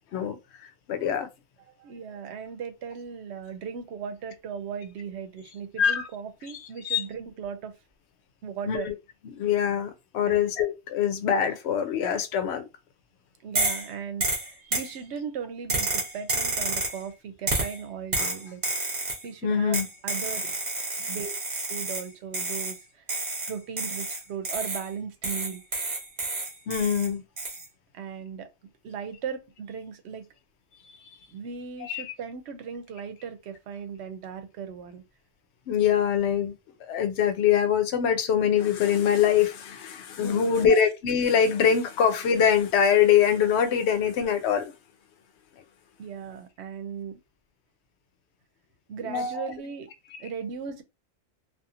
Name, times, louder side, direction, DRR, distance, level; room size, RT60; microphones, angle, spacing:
voice 1, 0.1-1.3 5.8-6.1 6.5-7.0 8.7-8.9 9.3-12.6 18.2-18.3 19.4-19.9 26.7-27.2 31.8-32.0 35.7-36.5 36.8-44.7 49.1-49.5, left 8 dB, 90° left, 0.9 m, -24 dB
voice 2, 1.7-7.7 8.4-8.9 10.3-10.4 13.4-18.6 19.2-20.5 21.0-21.4 21.7-23.0 23.5-25.6 27.9-28.5 28.8-30.3 31.3-35.0 40.2-40.7 46.0-47.2 48.9-49.9 50.2-50.8, right 6 dB, 85° right, 0.9 m, -37 dB
sound 1, 13.6-13.9 14.2-14.9 15.7-17.0 17.5-17.8 18.1-19.2 19.7-22.1 22.3-22.8 23.1-24.9 25.2-27.1 27.4-27.7, right 2 dB, 45° right, 1.0 m, -29 dB
2.7 x 2.4 x 2.4 m
omnidirectional pair, 1.1 m